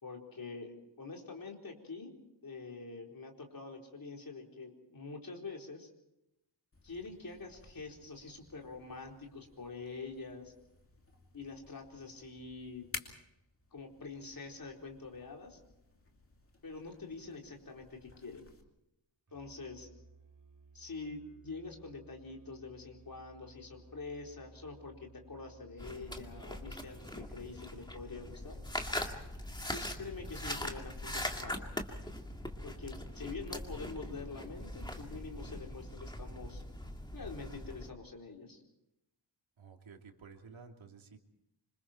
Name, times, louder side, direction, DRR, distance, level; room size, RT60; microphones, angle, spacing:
voice 1, 0.0-2.1 2.4-5.9 6.8-10.5 11.3-12.9 13.7-15.6 16.6-18.5 19.3-19.9 20.7-28.6 29.7-31.7 32.6-36.6 37.1-38.6, left 4 dB, 45° left, 1 dB, 4.3 m, -46 dB
sound 1, 6.7-18.6, left 3 dB, 30° left, 2.6 m, -54 dB
Musical instrument, 19.3-29.7, right 3 dB, 40° right, 3.8 m, -59 dB
sound 2, 25.8-37.9, left 1 dB, 10° left, 2.1 m, -41 dB
voice 2, 39.6-41.2, right 5 dB, 85° right, 3 dB, 2.9 m, -53 dB
27.5 x 26.0 x 4.5 m, 0.86 s
wide cardioid pair, 170°, 46 cm